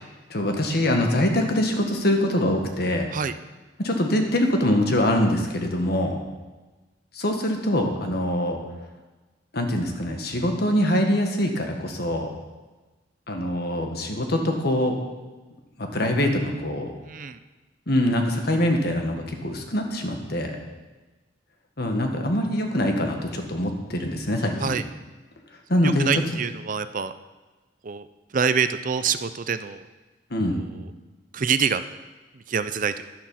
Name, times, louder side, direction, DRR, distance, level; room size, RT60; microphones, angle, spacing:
voice 1, 0.3-3.1 3.8-6.2 7.2-8.6 9.5-12.3 13.3-15.0 15.8-16.9 17.9-20.6 21.8-24.8 25.7-26.1 30.3-30.6, left 1 dB, 55° left, 3 dB, 1.7 m, -24 dB
voice 2, 17.1-17.4 24.6-24.8 25.8-27.1 27.8-28.1 28.3-29.8 30.5-30.9 31.3-31.8 32.3-33.0, right 6 dB, 45° right, 12 dB, 0.5 m, -26 dB
11.5 x 10.5 x 5.8 m, 1.2 s
head